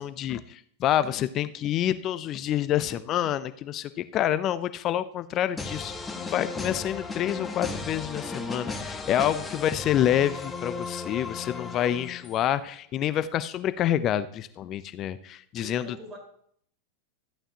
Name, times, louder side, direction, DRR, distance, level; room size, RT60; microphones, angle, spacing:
voice 1, 0.0-16.0, left 11 dB, 40° left, 14 dB, 0.6 m, -27 dB
sound 1, 5.6-12.5, left 3 dB, 15° left, 1.2 m, -36 dB
voice 2, 15.6-16.2, right 1 dB, 30° right, 1 dB, 4.3 m, -44 dB
13.5 x 8.9 x 2.9 m, 0.64 s
hypercardioid pair, 95°, 0 cm